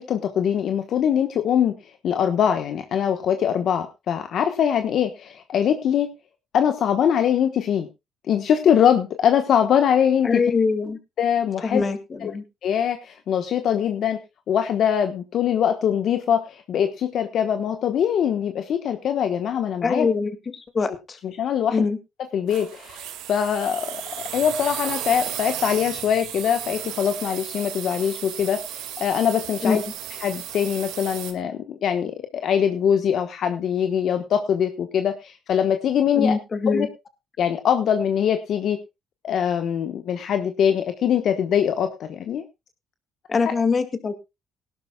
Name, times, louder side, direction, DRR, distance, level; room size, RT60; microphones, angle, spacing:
voice 1, 0.0-1.8 2.0-6.1 6.5-7.9 8.3-10.3 11.2-11.8 12.2-12.3 12.6-14.2 14.5-20.1 21.2-21.8 22.3-24.0 24.3-29.8 30.2-36.4 36.7-36.9 37.4-38.8 39.2-42.4 43.5-43.6, left 8 dB, 65° left, 8 dB, 1.1 m, -22 dB
voice 2, 10.2-11.0 11.6-12.4 19.8-21.2 21.7-22.0 29.6-29.8 36.1-36.9 43.3-44.1, left 4 dB, 35° left, 10 dB, 2.0 m, -23 dB
sound 1, 22.5-31.3, right 11 dB, 85° right, 2.0 m, -34 dB
19.0 x 11.5 x 2.3 m, 0.24 s
supercardioid pair, 80°, 0 cm